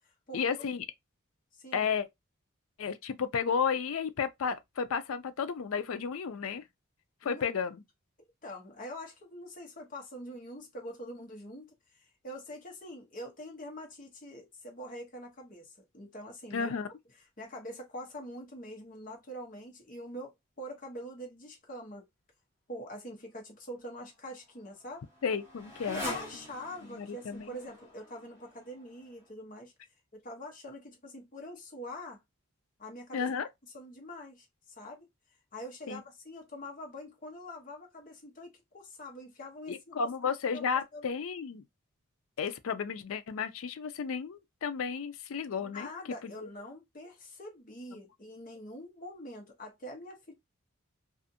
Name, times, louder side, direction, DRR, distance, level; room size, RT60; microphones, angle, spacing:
voice 1, 0.3-0.9 1.7-2.1 2.8-6.6 7.2-7.8 16.5-16.9 25.2-26.0 26.9-27.6 33.1-33.5 35.9-36.0 39.7-41.6 42.4-45.9 46.2-46.5, left 6 dB, 75° left, 0.4 m, -33 dB
voice 2, 1.5-1.9 7.2-7.5 8.4-16.7 17.4-22.0 22.7-25.1 25.9-29.7 30.1-32.2 32.8-33.3 33.7-34.5 34.8-35.1 35.5-40.7 40.9-41.1 45.6-50.3, equal, 40° left, 0.9 m, -44 dB
Motorcycle, 23.9-29.3, left 2 dB, 10° right, 1.2 m, -44 dB
2.5 x 2.4 x 2.6 m
head